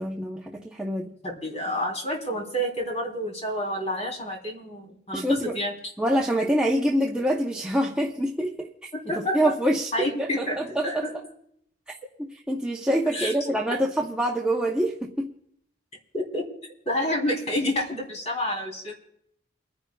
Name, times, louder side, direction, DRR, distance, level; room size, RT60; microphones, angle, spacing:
voice 1, 0.0-1.1 5.1-5.6 6.0-8.7 9.3-9.9 10.2-11.1 11.9-15.3, equal, 5° right, -2 dB, 0.8 m, -26 dB
voice 2, 1.2-5.7 8.9-9.5 9.9-11.1 13.1-13.8 16.1-16.5 16.8-18.9, equal, 35° left, -1 dB, 3.3 m, -29 dB
29.0 x 10.5 x 2.3 m, 0.70 s
head